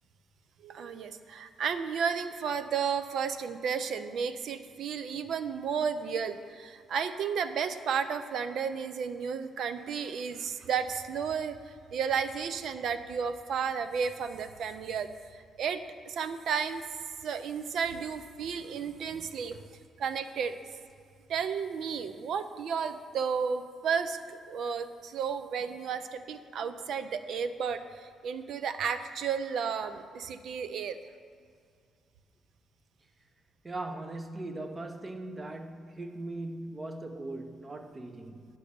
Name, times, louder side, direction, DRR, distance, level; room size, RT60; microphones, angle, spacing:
voice 1, 0.6-11.6 11.9-15.1 15.6-15.8 16.1-16.8 17.2-19.6 20.0-20.6 21.3-31.0, right 6 dB, 70° right, 0.5 m, -33 dB
voice 2, 33.6-38.5, right 2 dB, 25° right, 0.8 m, -39 dB
9.7 x 5.3 x 6.9 m
cardioid pair, 90°, 0 cm